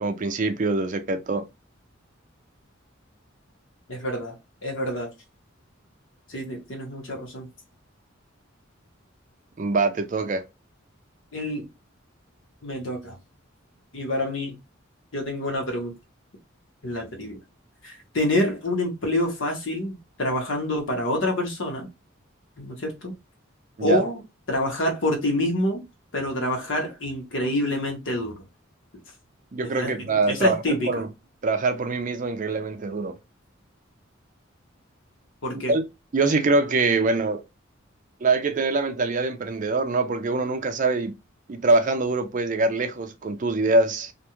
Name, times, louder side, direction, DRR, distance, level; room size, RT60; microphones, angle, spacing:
voice 1, 0.0-1.4 9.6-10.4 23.8-24.0 29.5-31.1 31.4-33.1 35.7-35.8 36.1-37.4 38.2-41.1 41.5-44.1, right 3 dB, 40° right, 0.4 m, -24 dB
voice 2, 3.9-4.3 4.6-5.1 6.3-7.5 11.3-11.7 12.6-13.1 13.9-14.6 15.1-16.0 16.8-17.4 17.8-21.9 22.6-23.1 23.8-24.2 24.5-25.8 26.1-28.3 29.7-31.0 35.4-35.7, left 1 dB, 65° left, 1.0 m, -27 dB
2.5 x 2.3 x 2.9 m
head